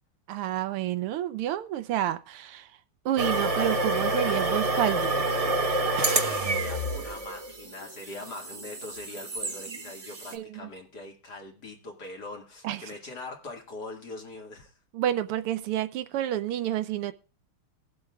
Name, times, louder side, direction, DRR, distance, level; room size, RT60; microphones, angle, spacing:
voice 1, 0.3-2.7 3.0-5.3 10.3-10.7 12.6-12.8 14.9-17.1, right 12 dB, 85° right, 1.7 m, -29 dB
sound 1, 3.2-10.3, right 2 dB, 35° right, 0.6 m, -28 dB
voice 2, 5.9-14.7, left 2 dB, 50° left, 2.6 m, -42 dB
20.5 x 7.9 x 2.4 m
omnidirectional pair, 2.4 m